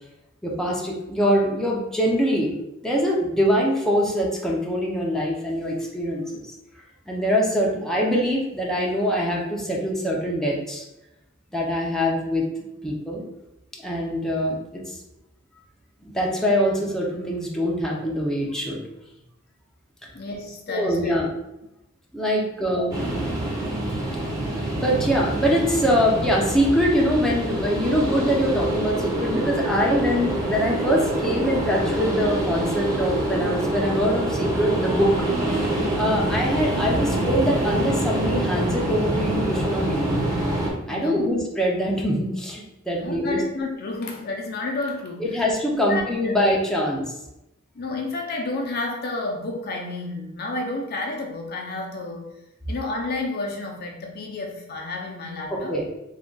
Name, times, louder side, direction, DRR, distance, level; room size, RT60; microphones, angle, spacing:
voice 1, 0.4-2.5 2.8-6.5 7.1-10.8 11.5-12.5 12.8-13.3 13.8-14.6 16.1-18.8 20.7-21.3 22.1-23.0 24.8-35.1 35.5-35.7 35.9-40.2 40.9-43.4 45.2-47.1 55.5-55.9, equal, 5° left, -4 dB, 0.6 m, -23 dB
voice 2, 20.1-21.2 40.9-41.3 42.9-45.5 45.7-46.4 47.8-52.3 52.7-55.8, left 2 dB, 50° left, 1 dB, 0.6 m, -31 dB
sound 1, 22.9-40.7, right 1 dB, 15° right, 0.9 m, -26 dB
3.5 x 2.4 x 3.8 m, 0.90 s
head